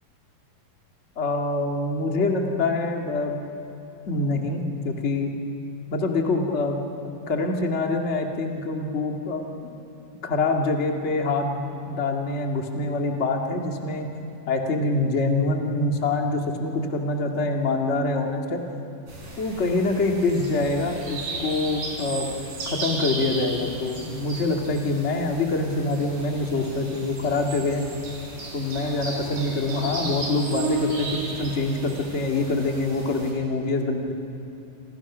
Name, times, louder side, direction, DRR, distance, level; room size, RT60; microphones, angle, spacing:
voice 1, 1.1-3.4 4.1-5.3 5.9-6.8 7.3-9.4 10.2-14.1 14.5-18.6 19.4-22.3 22.6-27.9 28.5-34.1, left 2 dB, 30° left, 2 dB, 1.3 m, -25 dB
sound 1, 19.1-33.3, right 3 dB, 60° right, 6.0 m, -34 dB
28.0 x 27.0 x 6.1 m, 2.8 s
omnidirectional pair, 4.2 m